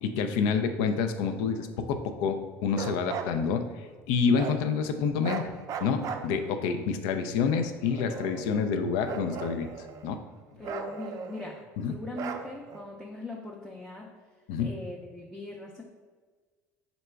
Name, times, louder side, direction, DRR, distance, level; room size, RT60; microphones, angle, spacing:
voice 1, 0.0-3.7 4.1-5.5 5.8-9.7 10.0-10.2 11.8-11.9 14.5-14.7, left 6 dB, 75° left, 8 dB, 0.4 m, -28 dB
Bark, 2.7-3.4 4.4-4.6 5.2-6.7 7.5-8.6 9.0-10.2 10.6-11.7 12.1-12.8, right 7 dB, 50° right, 0.4 m, -38 dB
voice 2, 10.6-14.1 14.6-15.8, left 2 dB, 5° left, -2 dB, 0.5 m, -40 dB
3.9 x 2.2 x 4.4 m, 1.4 s
hypercardioid pair, 80°, 8 cm